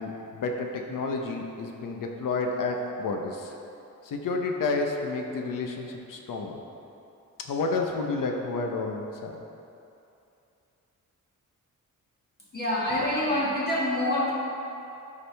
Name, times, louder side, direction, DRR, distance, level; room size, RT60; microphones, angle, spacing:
voice 1, 0.0-3.5 4.0-6.6 7.4-9.4, left 3 dB, 75° left, 2 dB, 0.9 m, -30 dB
voice 2, 12.5-14.3, left 1 dB, 30° left, -7 dB, 1.7 m, -26 dB
13.0 x 4.9 x 3.4 m, 2.7 s
wide cardioid pair, 155°, 32 cm